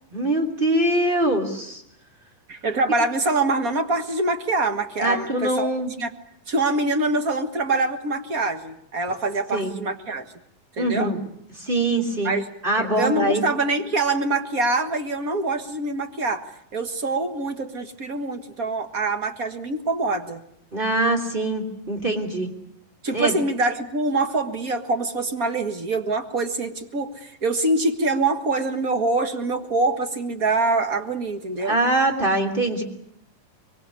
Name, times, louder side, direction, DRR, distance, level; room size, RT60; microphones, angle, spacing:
voice 1, 0.1-1.8 5.0-5.9 9.5-9.7 10.8-11.2 11.6-12.3 12.6-13.4 20.7-22.5 23.1-23.4 31.6-32.8, right 1 dB, 15° right, 5 dB, 3.1 m, -23 dB
voice 2, 2.5-5.7 6.0-6.1 6.5-10.3 10.8-11.1 12.2-12.5 12.8-16.4 16.7-20.4 23.0-31.8, right 2 dB, 40° right, 7 dB, 1.3 m, -24 dB
24.5 x 23.0 x 8.3 m, 0.71 s
omnidirectional pair, 3.9 m